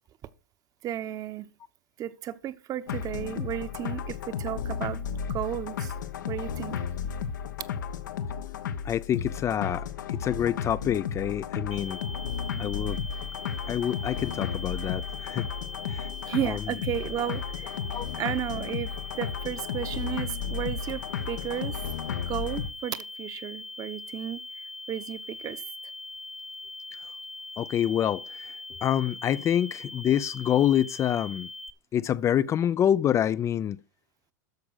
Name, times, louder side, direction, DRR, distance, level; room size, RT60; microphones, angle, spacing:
voice 1, 0.8-1.5 2.0-5.0 5.3-5.9 6.3-6.8 16.3-17.7 18.2-18.9 19.2-21.8 22.2-24.4 24.9-25.6, right 11 dB, 35° right, 1.0 m, -33 dB
sound 1, 2.9-22.7, left 7 dB, 85° left, 1.0 m, -34 dB
voice 2, 8.8-12.0 12.6-13.0 13.7-15.5 15.9-16.1 16.4-16.6 17.9-18.2 27.6-28.5 28.8-31.5 31.9-33.8, left 10 dB, 30° left, 0.4 m, -27 dB
sound 2, 11.7-31.7, left 2 dB, ahead, 0.9 m, -41 dB
13.0 x 4.9 x 6.3 m
hypercardioid pair, 105°, 10 cm